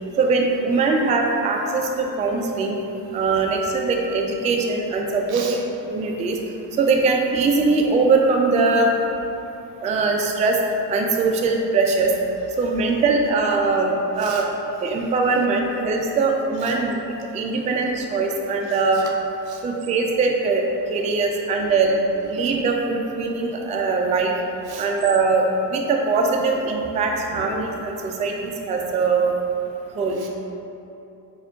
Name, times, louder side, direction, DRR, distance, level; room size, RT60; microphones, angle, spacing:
voice 1, 0.2-2.8 3.1-5.6 5.9-6.4 6.8-8.9 9.8-10.6 10.9-12.1 12.6-14.5 14.8-17.0 17.3-19.0 19.6-20.6 20.9-24.3 24.8-29.3 30.0-30.2, right 4 dB, 15° right, 1 dB, 0.3 m, -21 dB
voice 2, 5.3-5.6 14.2-14.4 16.6-16.8 18.6-19.1 19.5-19.6 22.2-22.4 24.6-24.9 27.3-27.5 30.1-30.3, right 6 dB, 50° right, 1 dB, 0.7 m, -37 dB
4.2 x 2.6 x 3.7 m, 2.9 s
hypercardioid pair, 50°, 50 cm